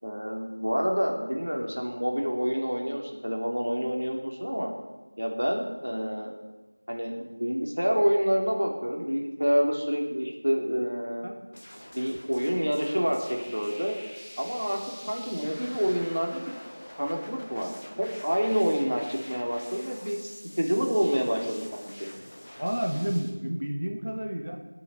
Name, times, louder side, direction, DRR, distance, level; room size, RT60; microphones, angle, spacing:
voice 1, 0.0-4.7 5.2-6.3 6.9-11.3 11.9-14.0 14.4-14.8 15.1-16.4 17.0-17.7 18.0-22.1, equal, 80° right, 1 dB, 3.2 m, -28 dB
sound 1, 11.5-23.3, left 1 dB, 20° left, 1.2 m, -46 dB
voice 2, 22.6-24.6, equal, 50° right, 2 dB, 2.1 m, -30 dB
23.0 x 8.4 x 5.6 m, 1.2 s
figure-of-eight pair, 180°, 0 cm